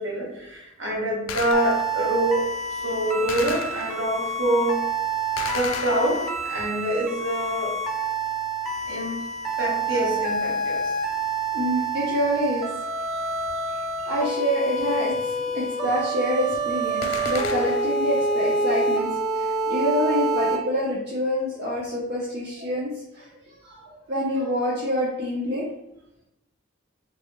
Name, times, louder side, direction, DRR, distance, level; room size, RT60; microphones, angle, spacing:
voice 1, 0.0-4.8 5.5-7.8 8.9-9.2 9.6-10.9 13.7-14.1, right 1 dB, 70° right, -3 dB, 1.0 m, -26 dB
Gunshot gunfire, 1.3-2.1 3.3-4.3 5.4-6.6 17.0-18.1, left 6 dB, 85° left, 0.3 m, -34 dB
sound 1, 1.5-20.6, right 2 dB, ahead, 0.4 m, -27 dB
voice 2, 11.5-12.7 14.1-22.9 23.1-23.3 23.6-23.8 24.1-25.6, equal, 55° right, -6 dB, 0.6 m, -26 dB
3.3 x 2.2 x 2.9 m, 0.84 s
head